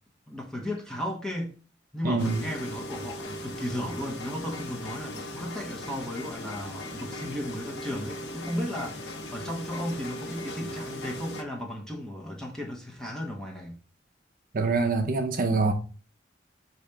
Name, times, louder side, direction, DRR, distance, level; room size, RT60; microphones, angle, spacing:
voice 1, 0.3-1.6 1.9-13.8, left 1 dB, 5° left, 0.7 m, -35 dB
voice 2, 2.0-2.4 14.5-15.7, right 3 dB, 50° right, 0.5 m, -25 dB
sound 1, 2.2-11.4, left 1 dB, 65° left, 0.7 m, -38 dB
4.8 x 2.7 x 3.3 m
head